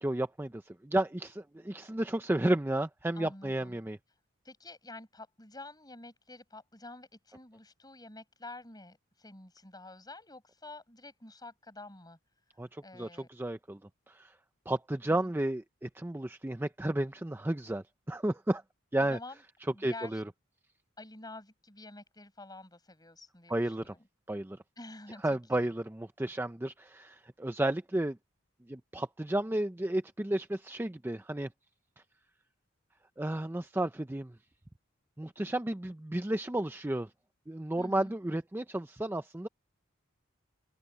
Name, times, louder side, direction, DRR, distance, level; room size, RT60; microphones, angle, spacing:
voice 1, 0.0-4.0 12.6-13.8 14.1-14.3 14.7-18.6 18.9-19.2 19.8-20.2 23.5-23.9 24.3-24.6 25.2-28.2 28.7-31.5 33.2-34.3 35.2-37.1 37.5-39.5, right 1 dB, 10° right, 0.5 m, -32 dB
voice 2, 3.1-3.8 4.4-12.2 12.8-13.3 15.1-15.3 19.0-19.4 19.7-20.2 21.0-24.1 24.8-25.7 37.8-38.1, left 2 dB, 20° left, 7.2 m, -49 dB
open air
head